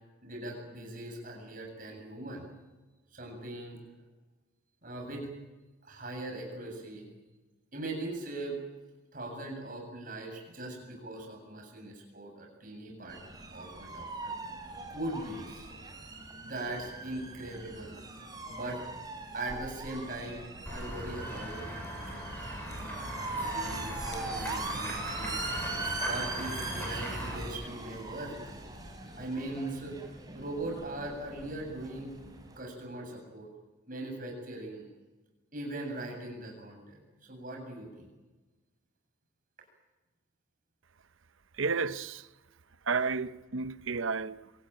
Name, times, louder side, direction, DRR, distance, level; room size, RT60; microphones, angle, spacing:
voice 1, 0.2-2.5 3.1-3.8 4.8-5.3 5.8-7.1 7.7-8.6 9.1-13.2 13.5-14.3 14.9-15.7 16.4-17.9 18.5-18.8 19.3-21.7 22.1-22.3 23.5-25.5 26.0-28.6 29.2-30.0 30.3-32.1 32.6-33.5 33.9-34.8 35.5-38.1, right 2 dB, 40° right, 7.6 m, -40 dB
sound 1, 13.1-32.6, right 3 dB, 20° right, 4.1 m, -41 dB
Run / Walk footsteps / Bell, 20.7-27.4, equal, 10° left, 7.4 m, -39 dB
sound 2, 20.9-29.3, left 1 dB, 55° left, 6.7 m, -53 dB
voice 2, 41.5-42.3 42.8-44.5, right 4 dB, 80° right, 0.8 m, -32 dB
25.5 x 18.5 x 9.0 m
head